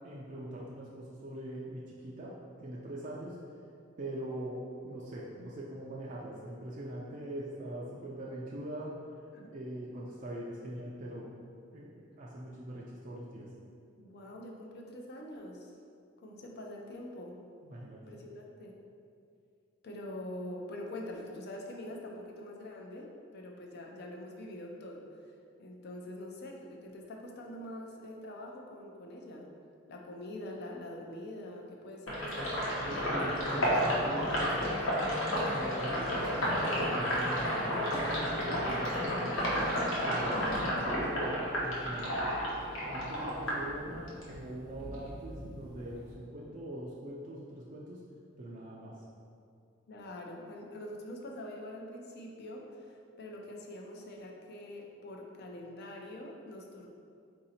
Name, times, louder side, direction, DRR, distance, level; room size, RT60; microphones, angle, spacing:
voice 1, 0.0-2.3 2.6-3.4 4.0-8.9 9.5-11.3 11.7-13.5 17.6-18.0 32.4-32.5 32.8-34.9 35.5-37.6 37.9-39.7 40.0-42.2 42.9-48.0 48.4-49.0, right 1 dB, 40° right, -5 dB, 0.4 m, -42 dB
voice 2, 14.0-15.7 16.2-17.4 18.1-18.8 19.8-25.3 25.6-29.5 29.9-32.5 49.9-56.9, left 1 dB, 55° left, 0 dB, 0.5 m, -44 dB
Sink (filling or washing), 32.1-44.3 44.7-46.1, equal, 75° left, 1.0 m, -31 dB
3.9 x 2.7 x 4.2 m, 2.4 s
head